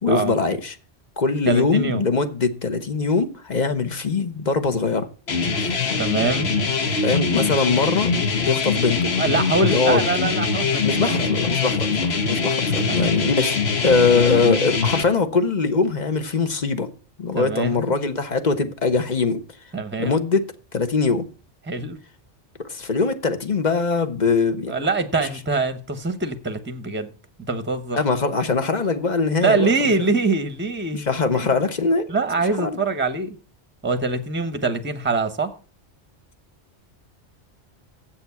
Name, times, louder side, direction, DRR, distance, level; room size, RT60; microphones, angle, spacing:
voice 1, 0.0-0.8 1.2-5.1 5.4-6.0 7.0-8.1 8.4-9.1 9.6-10.1 10.8-16.9 17.2-19.4 20.0-21.3 22.6-24.7 25.2-25.3 27.9-29.9 30.9-32.1 32.6-32.8, left 4 dB, 40° left, 1.1 m, -22 dB
voice 2, 1.5-2.0 6.0-6.5 9.2-11.2 12.9-13.2 17.3-17.8 19.7-20.2 21.7-22.0 24.7-27.1 27.5-28.0 29.4-31.0 32.1-33.4 33.8-35.5, right 3 dB, 10° right, 0.9 m, -24 dB
sound 1, 5.3-15.0, left 4 dB, 65° left, 1.4 m, -23 dB
7.9 x 7.1 x 6.9 m
omnidirectional pair, 1.2 m